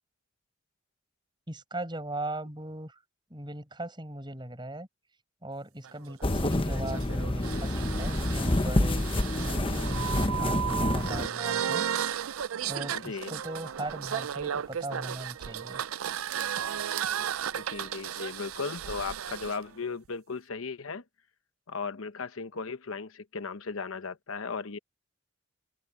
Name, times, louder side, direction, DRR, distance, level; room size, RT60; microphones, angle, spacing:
voice 1, 1.5-3.0 3.3-4.9 5.4-9.1 9.3-11.9 12.7-15.8, right 1 dB, 20° right, 5.3 m, -39 dB
sound 1, 5.8-19.6, right 9 dB, 85° right, 0.5 m, -34 dB
sound 2, 6.2-11.3, left 1 dB, 25° left, 1.0 m, -28 dB
voice 2, 12.9-13.3 17.5-21.0 21.7-24.8, left 4 dB, 80° left, 0.9 m, -36 dB
head